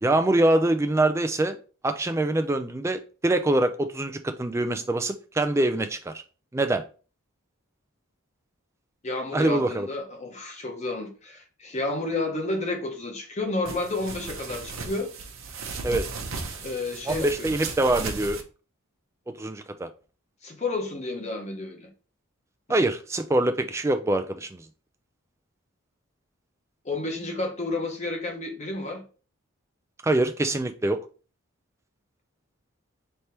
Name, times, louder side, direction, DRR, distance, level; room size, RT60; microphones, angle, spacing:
voice 1, 0.0-1.6 1.8-6.1 6.5-6.8 9.3-9.9 15.8-16.1 17.1-18.4 19.3-19.9 22.7-24.6 30.0-31.0, right 2 dB, 15° right, 0.3 m, -24 dB
voice 2, 9.0-15.1 16.6-17.5 20.4-21.9 26.8-29.0, left 2 dB, 30° left, 0.9 m, -31 dB
sound 1, 13.7-18.4, right 4 dB, 70° right, 0.8 m, -36 dB
3.3 x 2.8 x 4.4 m
head